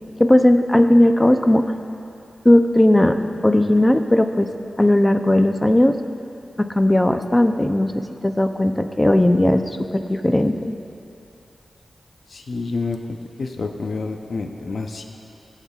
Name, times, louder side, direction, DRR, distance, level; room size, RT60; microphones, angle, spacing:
voice 1, 0.2-1.6 2.4-3.2 3.4-4.5 4.8-5.9 6.6-9.6 9.9-10.7, left 1 dB, 15° left, 7 dB, 0.5 m, -16 dB
voice 2, 12.3-15.0, left 3 dB, 65° left, 4 dB, 0.6 m, -28 dB
20.0 x 7.4 x 2.4 m, 2.7 s
wide cardioid pair, 100°, 0 cm